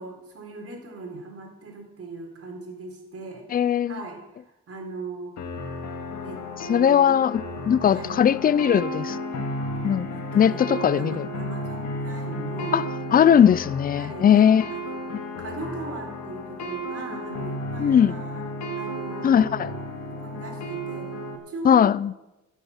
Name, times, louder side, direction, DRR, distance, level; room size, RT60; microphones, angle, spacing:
voice 1, 0.0-3.5 3.9-4.2 4.7-5.3 6.2-6.4 6.7-7.1 7.8-8.2 10.1-12.8 14.0-15.0 15.4-18.4 18.8-19.8 20.1-21.1 21.5-21.8, right 3 dB, 50° right, 3.9 m, -39 dB
voice 2, 3.5-4.0 6.7-9.5 9.8-10.1 10.3-11.3 12.7-12.8 13.1-14.6 17.8-18.2 19.2-19.7 21.6-22.1, left 8 dB, 30° left, 0.4 m, -19 dB
sound 1, 5.4-21.4, equal, 65° left, 2.3 m, -33 dB
15.0 x 7.3 x 7.2 m
cardioid pair, 90°, 30 cm